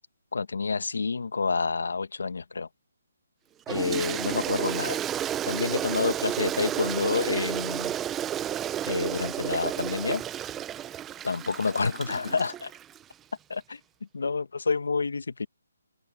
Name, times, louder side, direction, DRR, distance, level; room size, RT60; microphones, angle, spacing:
voice 1, 0.3-2.7 3.7-5.0 5.4-7.9 8.9-10.2 11.2-12.7 13.5-13.8 14.1-15.5, left 4 dB, 80° left, 1.4 m, -28 dB
Toilet flush, 3.7-13.0, right 11 dB, 10° right, 0.6 m, -32 dB
open air
hypercardioid pair, 170°, 0 cm